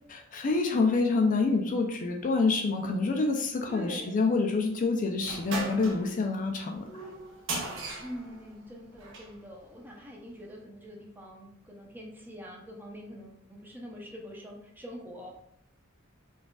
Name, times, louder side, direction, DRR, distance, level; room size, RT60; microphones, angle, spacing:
voice 1, 0.1-6.9, left 3 dB, 40° left, 3 dB, 0.4 m, -27 dB
voice 2, 3.7-4.2 8.0-15.3, equal, 10° right, -1 dB, 0.6 m, -44 dB
sound 1, 5.2-9.4, right 2 dB, 65° right, 0.8 m, -38 dB
4.7 x 2.4 x 2.3 m, 0.73 s
head